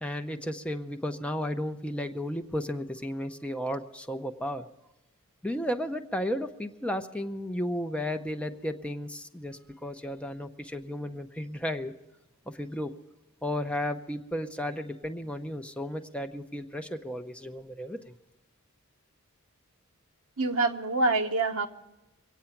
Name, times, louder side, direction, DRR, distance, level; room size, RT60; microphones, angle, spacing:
voice 1, 0.0-4.7 5.4-11.9 12.5-12.9 13.4-18.0, equal, 5° left, 6 dB, 0.7 m, -34 dB
voice 2, 20.4-21.7, right 3 dB, 70° right, 5 dB, 1.1 m, -26 dB
23.5 x 8.8 x 5.8 m, 0.98 s
head